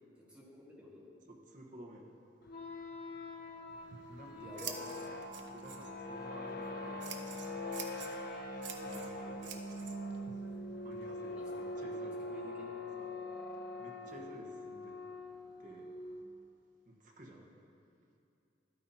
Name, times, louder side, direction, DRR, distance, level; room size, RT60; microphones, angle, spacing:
voice 1, 0.2-1.1 4.2-4.8 11.3-12.9 14.0-14.3 17.2-17.5, equal, 5° right, -6 dB, 1.7 m, -53 dB
voice 2, 1.3-2.0 3.1-3.2 3.9-4.8 5.5-7.8 8.8-9.4 10.8-12.2 13.0-13.1 13.8-15.0 15.6-15.9 16.9-17.4, right 1 dB, 50° right, -1 dB, 1.1 m, -53 dB
sound 1, 2.4-16.2, left 1 dB, 55° left, 0.7 m, -43 dB
Scissors, 3.7-11.8, right 7 dB, 75° right, 0.7 m, -50 dB
12.5 x 9.4 x 2.8 m, 2.5 s
head